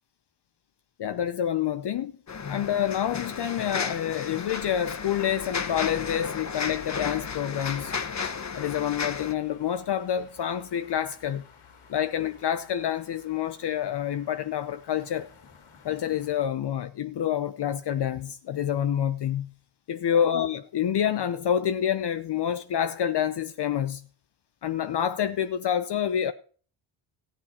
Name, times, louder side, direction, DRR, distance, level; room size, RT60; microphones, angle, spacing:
voice 1, 1.0-2.1 2.5-7.9 8.6-11.4 11.9-15.3 15.8-19.5 19.9-24.0 24.6-26.3, left 9 dB, 55° left, 0.7 m, -27 dB
sound 1, 2.3-9.3, left 6 dB, 35° left, 1.1 m, -33 dB
sound 2, 5.6-16.5, left 6 dB, 85° left, 2.1 m, -54 dB
14.0 x 9.2 x 4.3 m
cardioid pair, 75°, 49 cm